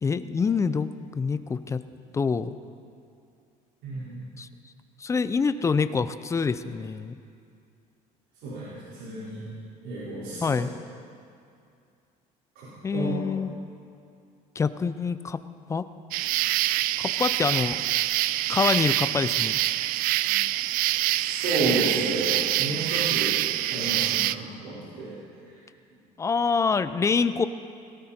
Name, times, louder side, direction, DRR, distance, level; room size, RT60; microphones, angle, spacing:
voice 1, 0.0-1.8 2.1-2.6 4.4-4.5 5.0-7.1 10.4-10.7 12.8-13.6 14.6-15.4 15.7-15.8 17.0-17.8 18.5-19.6 26.2-27.5, left 5 dB, 20° left, 13 dB, 0.5 m, -26 dB
voice 2, 3.8-4.3 8.4-9.4 9.8-10.6 12.5-13.1 20.2-20.4 21.1-23.3 23.7-25.2 25.4-25.6, right 2 dB, 85° right, -10 dB, 4.8 m, -31 dB
sound 1, 16.1-24.4, right 16 dB, 70° right, 0.4 m, -25 dB
18.0 x 17.0 x 4.4 m, 2.4 s
cardioid pair, 140°, 15 cm